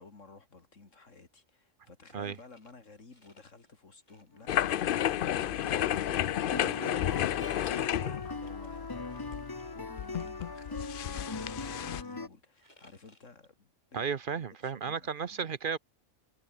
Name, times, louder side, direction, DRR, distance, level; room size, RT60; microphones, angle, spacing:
voice 1, 0.0-9.5 9.7-14.0 14.3-15.4, left 3 dB, 85° left, 3.2 m, -54 dB
sound 1, 2.3-3.7 4.0-4.5 4.8-7.1 7.4-13.5, left 2 dB, 35° left, 4.3 m, -64 dB
sound 2, 4.3-12.3, left 3 dB, 20° left, 0.9 m, -41 dB
sound 3, 4.5-12.0, left 11 dB, 60° left, 0.6 m, -32 dB
voice 2, 13.9-15.8, right 6 dB, 50° right, 0.9 m, -34 dB
omnidirectional pair, 1.3 m